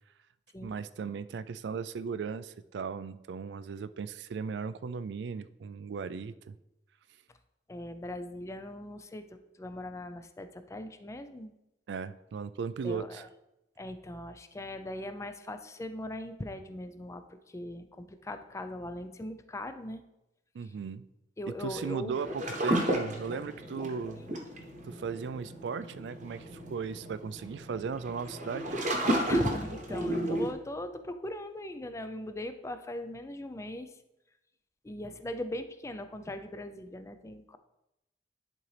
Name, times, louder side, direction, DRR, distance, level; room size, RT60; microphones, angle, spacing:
voice 1, 0.6-6.5 11.9-13.2 20.5-21.1 21.5-24.3 24.9-28.8, right 5 dB, 70° right, 15 dB, 0.3 m, -37 dB
voice 2, 7.7-11.5 12.8-13.3 13.8-20.0 20.6-20.7 21.4-22.2 24.2-24.3 29.2-34.0 34.8-37.6, left 1 dB, 15° left, 9 dB, 0.4 m, -40 dB
sound 1, 22.1-30.5, right 1 dB, 45° right, 0.9 m, -33 dB
10.5 x 3.9 x 3.3 m, 0.90 s
head